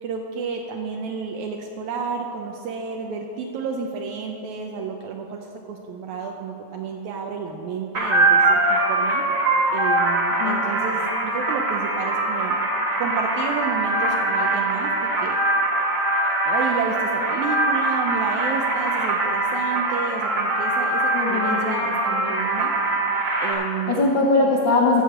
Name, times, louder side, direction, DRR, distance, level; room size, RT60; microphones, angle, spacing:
voice 1, 0.0-9.2 9.7-12.6 13.0-15.4 16.2-22.7 23.4-24.1, right 5 dB, 75° right, 2 dB, 1.9 m, -31 dB
sound 1, 7.9-23.5, right 2 dB, 35° right, 1.4 m, -22 dB
voice 2, 21.1-21.9 23.9-25.0, left 3 dB, 80° left, -3 dB, 1.0 m, -21 dB
14.5 x 5.0 x 7.7 m, 2.8 s
omnidirectional pair, 3.5 m